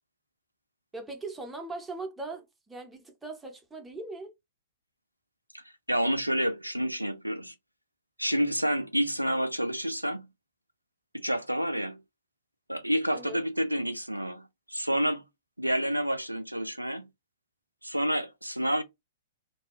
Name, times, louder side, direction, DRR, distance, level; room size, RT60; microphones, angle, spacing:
voice 1, 0.9-4.3 13.1-13.4, right 2 dB, 10° right, 0.6 m, -40 dB
voice 2, 5.5-7.5 8.2-10.3 11.1-12.0 12.7-15.2 15.6-17.1 17.8-18.8, equal, 90° right, 0.4 m, -29 dB
2.6 x 2.2 x 2.9 m
figure-of-eight pair, 110°, 0 cm